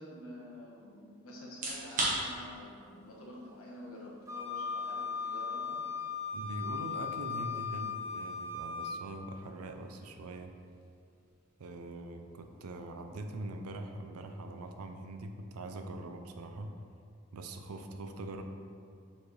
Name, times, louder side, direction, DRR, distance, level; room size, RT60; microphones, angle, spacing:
voice 1, 0.0-5.8, left 1 dB, 75° left, -4 dB, 1.3 m, -48 dB
sound 1, 1.5-16.3, right 2 dB, 35° right, 1.1 m, -45 dB
Wind instrument woodwind instrument, 4.3-9.0, left 5 dB, 15° right, 0.4 m, -37 dB
voice 2, 6.3-10.5 11.6-16.7 17.3-18.4, right 2 dB, 90° right, 6 dB, 0.5 m, -42 dB
7.0 x 4.5 x 3.3 m, 2.3 s
head